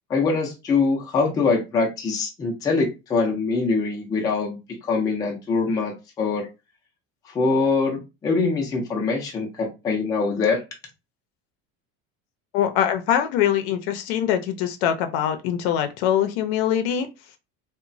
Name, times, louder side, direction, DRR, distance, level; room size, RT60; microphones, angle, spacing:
voice 1, 0.1-4.6 4.8-6.5 7.3-10.6, left 4 dB, 10° left, 0 dB, 0.3 m, -23 dB
voice 2, 12.5-17.1, left 10 dB, 85° left, 7 dB, 0.5 m, -23 dB
2.9 x 2.1 x 2.5 m, 0.26 s
cardioid pair, 180°, 31 cm